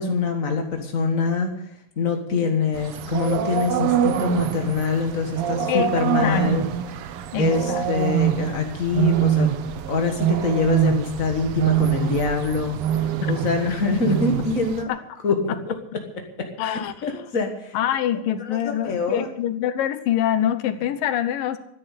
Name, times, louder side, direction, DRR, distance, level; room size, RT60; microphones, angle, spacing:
voice 1, 0.0-1.6 2.0-6.6 7.4-9.5 9.9-14.9 15.2-15.8 16.4-17.8 18.4-19.3, left 4 dB, 50° left, 4 dB, 0.9 m, -25 dB
sound 1, 2.7-14.8, right 9 dB, 85° right, 1.2 m, -24 dB
voice 2, 6.2-6.7 7.3-7.9 14.9-15.0 16.6-17.2 17.7-21.6, left 11 dB, 80° left, 12 dB, 2.7 m, -25 dB
14.0 x 10.5 x 8.3 m, 0.77 s
omnidirectional pair, 4.0 m